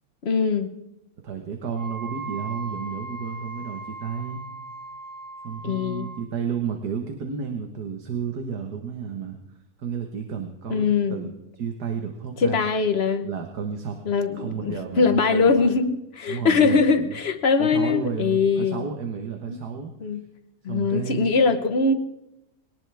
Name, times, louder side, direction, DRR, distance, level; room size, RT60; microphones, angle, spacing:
voice 1, 0.2-0.7 5.6-6.1 10.7-11.2 12.4-13.3 14.0-18.9 19.5-19.6 20.0-20.2 20.6-21.9, left 4 dB, 45° left, 8 dB, 1.1 m, -22 dB
voice 2, 1.2-4.4 5.4-9.4 9.8-11.3 11.6-12.6 13.2-14.0 14.3-15.7 16.3-17.2 17.6-19.9 20.7-21.3, right 6 dB, 80° right, 3 dB, 1.9 m, -32 dB
Wind instrument woodwind instrument, 1.7-6.3, right 3 dB, 20° right, 3.8 m, -38 dB
21.5 x 18.5 x 3.4 m, 0.90 s
omnidirectional pair, 1.7 m